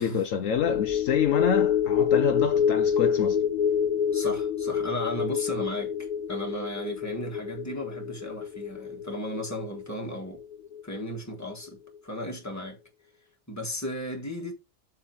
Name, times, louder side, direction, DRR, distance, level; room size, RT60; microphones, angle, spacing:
voice 1, 0.0-3.4, left 8 dB, 70° left, 1.0 m, -27 dB
sound 1, 0.6-11.2 11.5-11.7, left 8 dB, 85° left, 1.3 m, -27 dB
voice 2, 4.1-10.4 10.8-12.8 13.5-14.5, equal, 10° left, 1.6 m, -35 dB
7.8 x 3.5 x 5.8 m
omnidirectional pair, 1.5 m